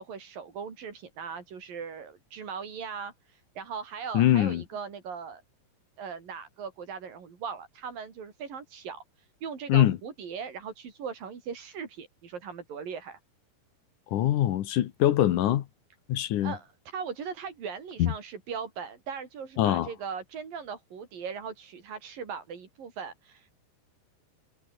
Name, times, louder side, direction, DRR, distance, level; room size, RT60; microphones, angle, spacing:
voice 1, 0.0-5.4 6.0-13.2 16.4-23.6, right 6 dB, 85° right, 5.7 m, -39 dB
voice 2, 4.1-4.6 9.7-10.0 14.1-15.7 16.1-16.5 18.0-18.1 19.6-19.9, left 12 dB, 70° left, 2.6 m, -23 dB
omnidirectional pair, 3.9 m